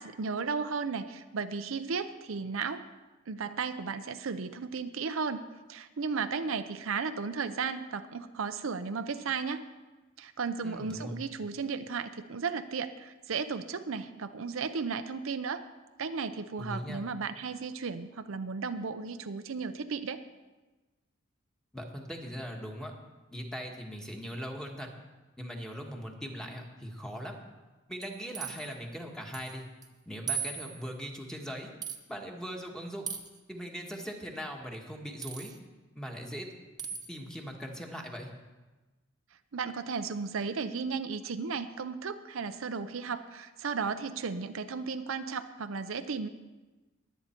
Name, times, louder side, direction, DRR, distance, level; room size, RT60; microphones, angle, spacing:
voice 1, 0.0-2.9 3.3-5.4 5.7-9.6 10.2-15.6 16.0-20.2 39.5-46.3, right 5 dB, 75° right, 9 dB, 0.6 m, -34 dB
voice 2, 10.6-11.2 16.6-17.1 21.7-22.9 23.3-24.9 25.4-27.4 27.9-29.7 30.0-31.7 32.1-33.1 33.5-35.5 35.9-36.5 37.1-38.3, equal, 5° left, 1 dB, 1.5 m, -40 dB
sound 1, 28.0-28.7 29.3-29.5 29.8-29.9 30.3-30.9 31.8-32.0 33.1-33.4 35.2-35.6 36.8-37.1, right 7 dB, 20° right, 0.9 m, -37 dB
21.0 x 8.3 x 4.4 m, 1.2 s
head